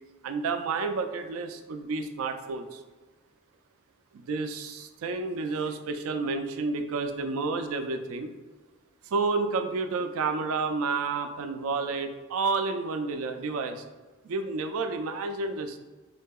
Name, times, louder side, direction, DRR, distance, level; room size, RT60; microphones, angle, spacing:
voice 1, 0.2-2.8 4.1-8.3 9.0-13.8 14.2-15.8, right 4 dB, 70° right, 7 dB, 0.3 m, -30 dB
3.7 x 2.7 x 2.3 m, 1.3 s
head